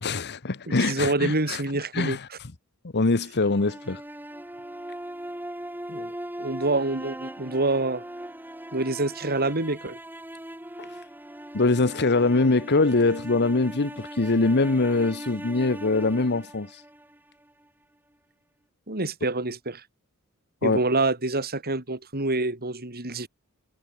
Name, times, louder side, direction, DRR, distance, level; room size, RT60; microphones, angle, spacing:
voice 1, 0.0-1.6 1.9-2.3 2.9-4.0 10.8-10.9 11.5-16.7 20.6-20.8, left 3 dB, 50° left, 1.1 m, -23 dB
voice 2, 0.8-2.4 5.9-8.0 8.7-10.0 18.9-19.8 20.6-23.3, right 2 dB, 45° right, 4.7 m, -27 dB
sound 1, 3.4-17.5, right 1 dB, 10° right, 4.2 m, -39 dB
head